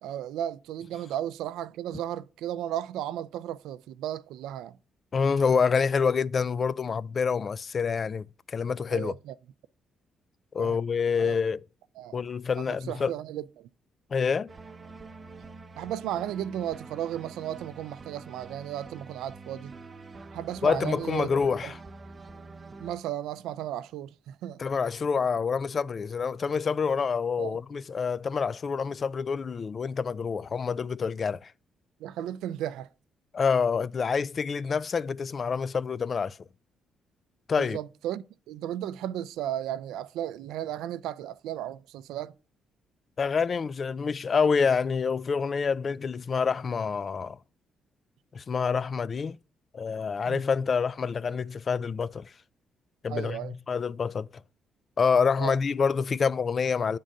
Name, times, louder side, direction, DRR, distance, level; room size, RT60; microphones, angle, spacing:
voice 1, 0.0-4.8 8.9-9.3 10.6-10.8 11.2-11.4 12.0-12.2 12.6-13.7 15.8-19.7 20.3-21.3 21.6-21.7 22.8-24.6 27.4-27.6 32.0-32.9 37.6-42.3 50.2-50.4 53.1-53.6 55.4-55.6, right 11 dB, 90° right, 0.4 m, -35 dB
voice 2, 5.1-9.1 10.5-11.6 12.1-13.1 14.1-14.5 20.6-21.7 24.6-31.5 33.3-36.4 37.5-37.8 43.2-47.4 48.3-49.4 49.7-52.3 53.0-54.3 55.0-57.0, left 5 dB, 45° left, 0.3 m, -27 dB
sound 1, 14.5-22.9, right 3 dB, 30° right, 0.7 m, -46 dB
8.8 x 3.8 x 5.3 m
cardioid pair, 90°, 0 cm